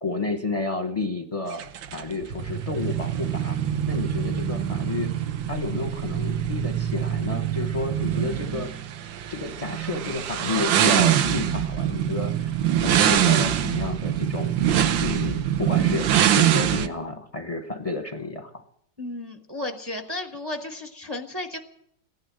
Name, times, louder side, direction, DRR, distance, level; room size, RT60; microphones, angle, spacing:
voice 1, 0.0-1.6 1.9-3.6 3.9-8.7 9.3-14.5 15.0-18.6, left 3 dB, 30° left, 5 dB, 0.6 m, -31 dB
sound 1, 1.5-16.9, right 10 dB, 75° right, 1.5 m, -24 dB
voice 2, 19.0-21.6, left 1 dB, 20° right, 4 dB, 0.9 m, -33 dB
15.5 x 11.0 x 7.5 m, 0.72 s
omnidirectional pair, 2.0 m